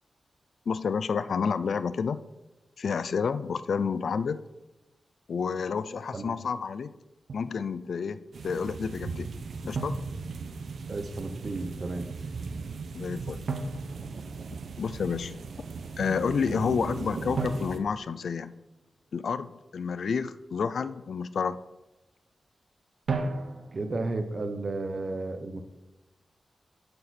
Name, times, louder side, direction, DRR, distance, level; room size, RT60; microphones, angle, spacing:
voice 1, 0.7-2.2 2.8-4.4 5.3-6.9 7.3-9.3 9.6-9.9 12.9-13.5 14.8-15.4 16.0-18.5 19.1-21.6, left 6 dB, 70° left, 14 dB, 0.4 m, -30 dB
Drum, 7.3-7.6 9.7-10.9 13.5-14.9 17.4-19.1 23.1-24.0, right 3 dB, 70° right, 1.1 m, -35 dB
sound 1, 8.3-17.8, right 4 dB, 85° right, 0.8 m, -38 dB
voice 2, 10.9-12.1 23.7-25.6, right 2 dB, 40° right, 8 dB, 0.8 m, -33 dB
11.5 x 6.7 x 4.2 m, 1.0 s
wide cardioid pair, 165°, 0 cm